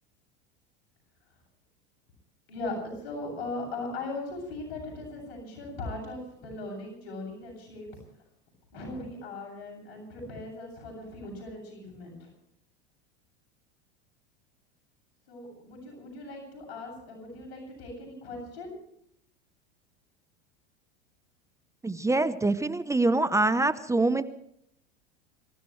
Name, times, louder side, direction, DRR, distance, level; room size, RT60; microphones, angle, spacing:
voice 1, 3.0-7.9 8.7-12.3 15.3-18.7, left 2 dB, 70° left, 1 dB, 7.7 m, -39 dB
voice 2, 21.8-24.2, right 2 dB, 10° right, 12 dB, 0.8 m, -25 dB
26.5 x 15.0 x 3.2 m, 0.73 s
hypercardioid pair, 100°, 33 cm